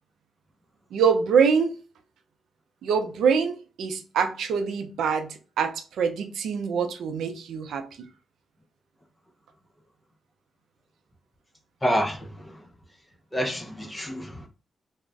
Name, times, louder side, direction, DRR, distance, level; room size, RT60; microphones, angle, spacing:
voice 1, 0.9-1.8 2.8-8.1, right 6 dB, 90° right, 0.4 m, -25 dB
voice 2, 11.8-12.2 13.3-14.5, equal, 20° left, 0.6 m, -27 dB
2.4 x 2.1 x 3.3 m
cardioid pair, 65°, 0 cm